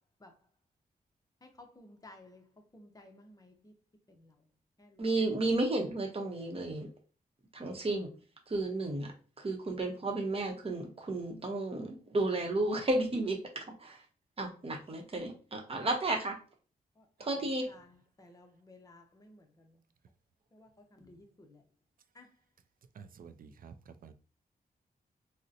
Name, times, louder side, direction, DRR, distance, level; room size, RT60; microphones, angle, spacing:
voice 1, 1.4-3.7 4.1-4.5 4.8-5.0 17.0-19.8 20.5-21.6 22.1-22.4, left 2 dB, 20° left, 0.7 m, -57 dB
voice 2, 5.0-6.9 7.5-8.1 8.5-9.1 9.4-14.0 14.4-16.4 17.2-17.7, right 2 dB, 40° right, 0.8 m, -33 dB
voice 3, 23.0-23.7 24.0-24.1, right 6 dB, 65° right, 0.4 m, -50 dB
3.8 x 2.1 x 2.7 m
wide cardioid pair, 90°, 16 cm